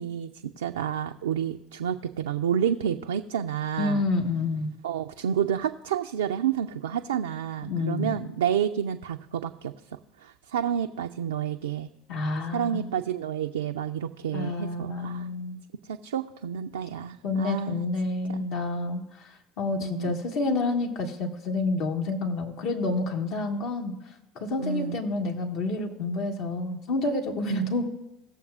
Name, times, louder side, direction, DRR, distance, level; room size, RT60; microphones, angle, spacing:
voice 1, 0.0-4.0 4.8-9.7 10.2-11.9 12.5-15.3 15.9-17.9 18.3-18.5 19.8-20.1 24.6-25.0 27.5-27.7, right 9 dB, 85° right, 6 dB, 0.3 m, -29 dB
voice 2, 3.8-4.7 7.7-8.2 12.1-12.9 14.3-15.6 17.2-23.9 24.3-27.8, left 3 dB, 65° left, 2 dB, 1.6 m, -29 dB
18.0 x 7.0 x 2.4 m, 0.88 s
hypercardioid pair, 65°, 0 cm